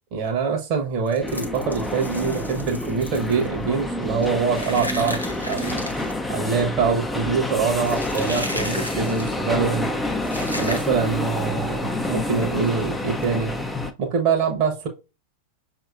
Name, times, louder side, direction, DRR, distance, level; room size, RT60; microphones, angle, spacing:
voice 1, 0.1-5.8 6.3-9.9 10.5-13.5 14.0-14.9, right 5 dB, 40° right, 1.1 m, -24 dB
sound 1, 0.7-11.2 11.5-11.7 12.0-12.2 12.6-13.3, left 1 dB, 90° left, 0.8 m, -36 dB
sound 2, 1.2-13.9, left 1 dB, 5° left, 0.5 m, -28 dB
6.1 x 2.9 x 2.5 m
figure-of-eight pair, 90°, 0 cm